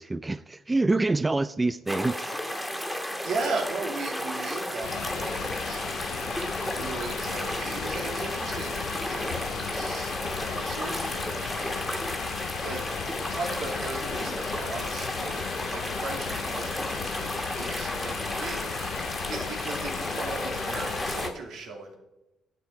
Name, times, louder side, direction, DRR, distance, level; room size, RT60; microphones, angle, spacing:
voice 1, 0.0-2.3, right 2 dB, 20° right, 14 dB, 0.3 m, -26 dB
sound 1, 1.9-21.3, left 1 dB, 5° left, 1.9 m, -33 dB
voice 2, 3.0-5.8 6.7-12.8 13.3-22.0, right 3 dB, 75° right, 2 dB, 2.5 m, -37 dB
sound 2, 4.8-21.3, left 11 dB, 85° left, 0.4 m, -36 dB
10.5 x 7.5 x 4.6 m, 0.92 s
cardioid pair, 90°, 0 cm